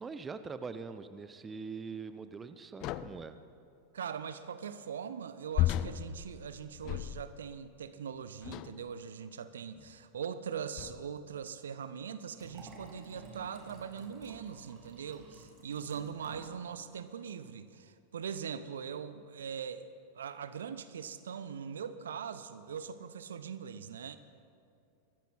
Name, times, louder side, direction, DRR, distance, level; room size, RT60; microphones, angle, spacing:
voice 1, 0.0-3.4, right 5 dB, 15° right, 11 dB, 0.7 m, -43 dB
sound 1, 2.8-3.3 5.6-7.5 8.4-8.9 9.8-9.9 10.8-11.2, left 14 dB, 40° left, 0.5 m, -34 dB
voice 2, 3.9-19.9 20.1-24.2, right 7 dB, 65° right, 13 dB, 0.7 m, -41 dB
Liquid, 12.4-16.6 16.9-17.0, right 3 dB, 35° right, 2.8 m, -52 dB
24.0 x 13.5 x 4.3 m, 2.4 s
figure-of-eight pair, 90°, 0 cm